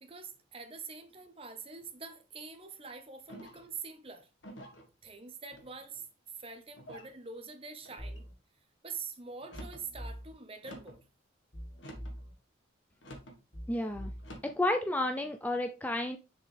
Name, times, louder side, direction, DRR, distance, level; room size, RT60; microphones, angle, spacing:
voice 1, 0.0-4.3 5.0-6.1 6.4-8.3 8.8-11.0, right 5 dB, 30° right, 1.0 m, -45 dB
sound 1, 3.3-3.8 4.4-4.9 5.5-6.0 6.8-7.2 7.8-8.2 9.4-9.9 10.6-11.0 11.8-12.2 13.0-13.4 14.2-14.6, equal, 70° left, 1.6 m, -49 dB
sound 2, 8.0-8.3 9.5-10.3 11.5-12.3 13.5-14.3, equal, 45° left, 2.5 m, -43 dB
voice 2, 13.7-14.1 14.4-16.2, left 1 dB, 10° left, 0.4 m, -31 dB
6.6 x 5.3 x 3.4 m
head